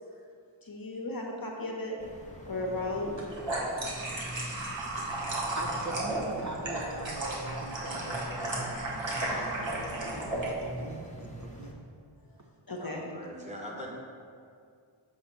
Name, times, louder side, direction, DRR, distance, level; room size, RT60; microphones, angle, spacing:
voice 1, 0.6-2.0 2.4-3.1 12.7-13.0, left 2 dB, 50° left, 0 dB, 0.9 m, -35 dB
sound 1, 2.0-11.7, right 1 dB, 15° left, 0.8 m, -44 dB
sound 2, 3.0-10.5, right 2 dB, 70° right, 1.2 m, -34 dB
voice 2, 5.5-10.2 10.4-11.8, right 2 dB, 40° right, 0 dB, 0.5 m, -41 dB
voice 3, 12.8-13.9, equal, 15° right, -3 dB, 1.2 m, -42 dB
7.2 x 2.8 x 5.5 m, 2.3 s
wide cardioid pair, 45°, 47 cm